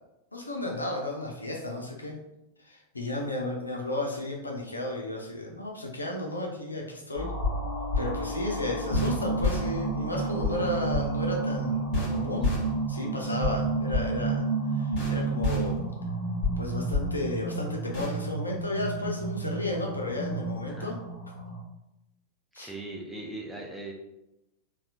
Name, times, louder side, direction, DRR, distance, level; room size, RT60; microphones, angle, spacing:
voice 1, 0.3-2.2 2.6-7.3 8.0-12.5 12.9-14.5 14.7-15.8 16.6-21.0 22.5-22.7, left 1 dB, 80° left, 0 dB, 0.6 m, -33 dB
sound 1, 7.2-21.6, right 1 dB, 40° left, 1.1 m, -30 dB
voice 2, 10.3-10.8 20.7-21.0 22.6-23.9, right 2 dB, ahead, -1 dB, 0.6 m, -39 dB
4.2 x 2.3 x 2.4 m, 0.90 s
figure-of-eight pair, 90°, 0 cm